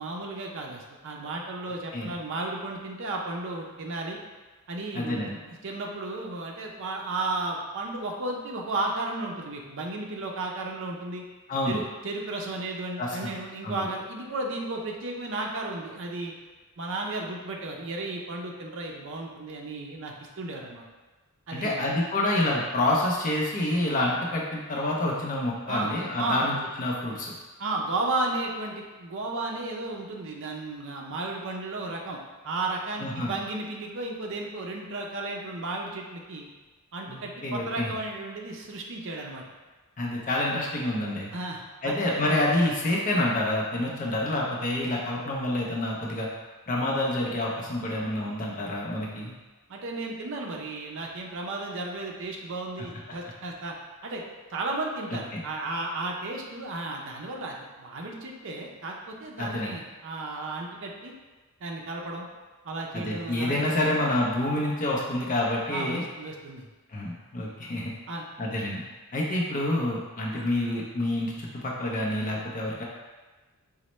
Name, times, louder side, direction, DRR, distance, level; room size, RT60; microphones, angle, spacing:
voice 1, 0.0-4.2 4.7-11.2 11.7-16.3 16.8-20.8 21.5-21.8 25.7-25.9 26.2-26.5 27.6-32.2 32.4-36.4 36.9-39.4 41.3-42.2 49.7-53.7 54.0-54.2 54.5-61.1 61.6-62.3 62.6-63.7 65.7-66.7 68.1-68.2 70.3-70.4, right 2 dB, 60° right, 0 dB, 0.5 m, -34 dB
voice 2, 4.9-5.4 11.5-11.8 13.0-13.1 13.6-13.8 21.5-27.3 33.0-33.3 37.1-37.9 40.0-41.3 41.8-46.3 46.7-49.3 55.3-55.4 59.4-59.8 62.9-66.0 66.9-67.9 68.4-68.8 69.1-72.8, left 1 dB, 35° left, -3 dB, 0.5 m, -28 dB
4.0 x 2.1 x 3.1 m, 1.3 s
head